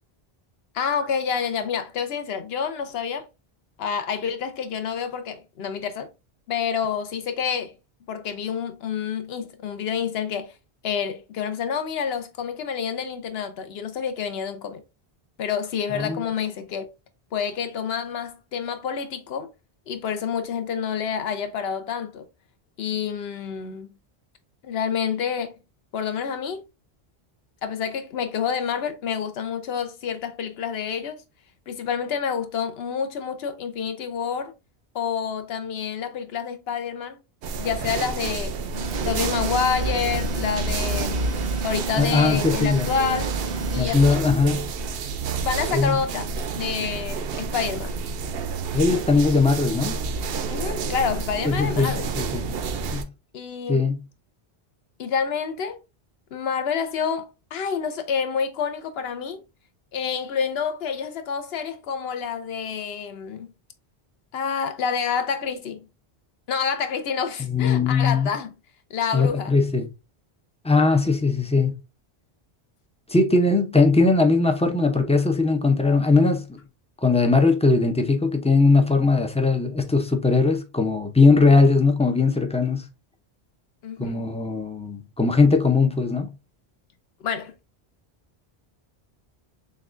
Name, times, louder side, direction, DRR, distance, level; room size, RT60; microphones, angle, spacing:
voice 1, 0.7-3.3 3.8-6.1 6.5-7.7 8.1-10.5 10.8-14.8 15.4-16.9 17.3-19.5 19.9-22.3 22.8-23.9 24.6-25.5 25.9-26.6 27.6-31.2 31.7-34.5 34.9-37.2 37.6-38.6 39.0-41.2 41.6-43.3 43.7-44.2 45.4-48.0 50.5-52.1 53.3-53.8 55.0-55.8 56.3-59.4 59.9-63.5 64.3-65.8 66.5-68.5 68.9-69.6 83.8-84.2 87.2-87.5, left 7 dB, 70° left, 0.9 m, -28 dB
sound 1, 37.4-53.0, right 4 dB, 70° right, 0.7 m, -29 dB
sound 2, 38.7-43.9, right 3 dB, 85° right, 1.3 m, -32 dB
voice 2, 42.0-42.9 43.8-44.7 45.7-46.0 48.7-50.0 51.4-52.5 52.9-53.1 53.7-54.0 67.4-68.3 69.1-69.9 70.6-71.7 73.1-76.6 77.0-82.8 84.0-86.3, left 3 dB, 10° left, 0.3 m, -20 dB
6.3 x 2.3 x 2.5 m
omnidirectional pair, 1.1 m